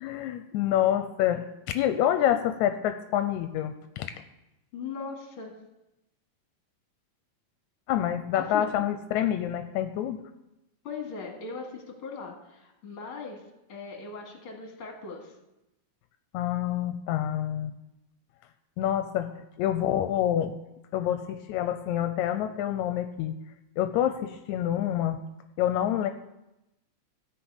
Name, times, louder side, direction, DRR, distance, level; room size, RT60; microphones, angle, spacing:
voice 1, 0.0-4.1 7.9-10.2 16.3-17.7 18.8-20.6 20.9-23.4 23.8-25.2 25.6-26.1, left 11 dB, 85° left, 9 dB, 1.9 m, -27 dB
voice 2, 4.7-5.5 8.3-8.7 10.8-13.4 13.7-15.3, left 5 dB, 50° left, 1 dB, 2.7 m, -39 dB
13.5 x 5.5 x 7.9 m, 0.93 s
omnidirectional pair, 3.3 m